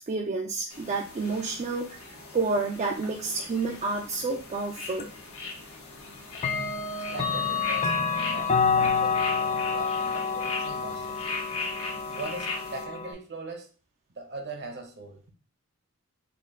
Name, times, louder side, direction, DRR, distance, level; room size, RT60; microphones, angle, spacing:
voice 1, 0.0-5.1, right 3 dB, 30° right, 0.4 m, -30 dB
sound 1, 0.7-12.8, left 3 dB, 85° left, 1.3 m, -39 dB
Clock, 5.0-5.1 6.4-13.1, left 5 dB, 30° left, 0.4 m, -28 dB
voice 2, 7.1-11.2 12.1-13.7 14.2-15.3, right 2 dB, 50° right, 0.8 m, -40 dB
4.3 x 2.3 x 3.5 m
head